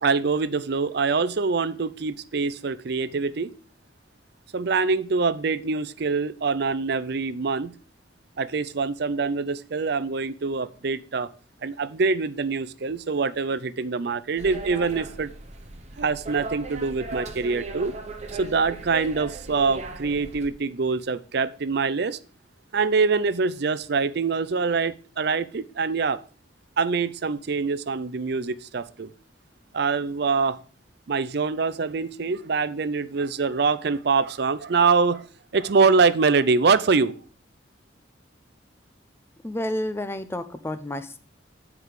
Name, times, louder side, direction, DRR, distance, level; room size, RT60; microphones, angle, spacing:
voice 1, 0.0-3.5 4.5-7.7 8.4-11.3 11.6-15.3 16.0-17.9 18.3-22.2 22.7-26.2 26.8-29.1 29.7-30.6 31.1-35.3 35.5-37.1, right 4 dB, 60° right, 0.5 m, -24 dB
sound 1, 14.4-20.5, right 3 dB, 35° right, 1.0 m, -37 dB
voice 2, 39.4-41.2, left 1 dB, 15° left, 0.6 m, -30 dB
9.5 x 4.8 x 4.9 m
head